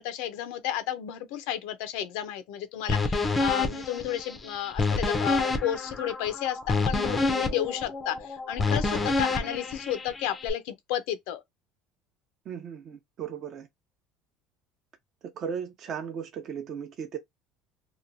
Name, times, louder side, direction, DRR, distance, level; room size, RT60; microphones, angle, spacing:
voice 1, 0.0-11.4, left 11 dB, 80° left, 0.5 m, -32 dB
sound 1, 2.9-10.5, left 3 dB, 15° left, 0.5 m, -28 dB
voice 2, 12.5-13.7 15.3-17.2, right 7 dB, 40° right, 0.6 m, -36 dB
2.9 x 2.2 x 2.5 m
cardioid pair, 150°, 0 cm